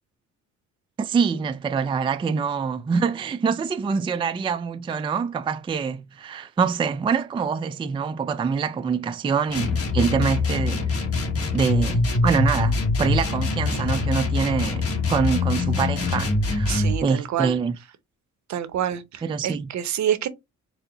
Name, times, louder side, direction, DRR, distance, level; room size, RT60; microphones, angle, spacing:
voice 1, 1.0-11.0 11.5-17.8 19.2-19.7, right 6 dB, 15° right, 0.3 m, -25 dB
sound 1, 9.5-17.0, left 3 dB, 50° left, 1.2 m, -24 dB
voice 2, 16.7-17.6 18.5-20.3, right 10 dB, 65° right, 0.7 m, -27 dB
4.3 x 2.1 x 3.8 m
cardioid pair, 90°, 30 cm